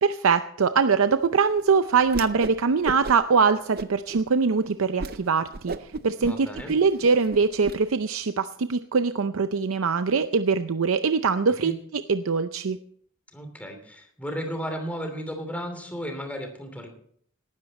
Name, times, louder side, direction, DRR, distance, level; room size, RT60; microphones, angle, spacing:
voice 1, 0.0-12.8, right 5 dB, 85° right, 10 dB, 0.6 m, -23 dB
Whoosh swoosh swish, 2.1-2.6 2.8-3.4 3.7-4.2 4.6-4.7 5.0-5.2 5.5-7.8, right 3 dB, 45° right, 0.6 m, -34 dB
voice 2, 6.2-6.7 11.6-11.8 13.3-16.9, equal, 5° left, 5 dB, 3.0 m, -34 dB
18.0 x 13.0 x 4.2 m, 0.63 s
head